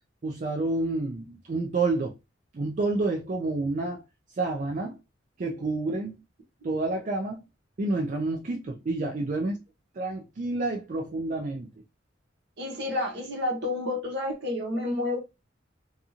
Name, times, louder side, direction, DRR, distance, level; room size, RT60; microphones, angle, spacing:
voice 1, 0.2-2.1 2.5-4.0 4.4-5.0 5.4-6.2 6.6-7.4 7.8-9.6 10.0-11.7, right 2 dB, 40° right, 0.4 m, -29 dB
voice 2, 12.6-15.2, left 2 dB, 60° right, 1.0 m, -30 dB
2.6 x 2.4 x 2.8 m
head